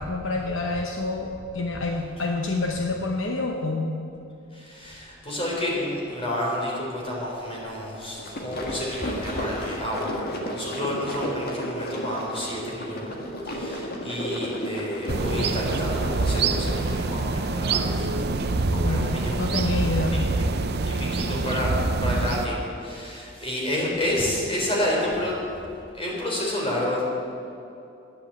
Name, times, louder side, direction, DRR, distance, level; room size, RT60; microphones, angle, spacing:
voice 1, 0.0-4.0 18.7-20.2, left 3 dB, 65° left, 2 dB, 0.9 m, -28 dB
voice 2, 4.5-10.2 10.5-13.1 13.4-18.2 18.7-19.4 20.1-20.4 20.8-21.7 22.0-25.3 25.7-27.0, left 1 dB, 30° left, -4 dB, 3.8 m, -30 dB
sound 1, 8.0-16.9, equal, 50° left, 1.9 m, -32 dB
sound 2, 15.1-22.5, right 3 dB, 50° right, 0.7 m, -25 dB
11.5 x 9.7 x 8.0 m, 2.7 s
head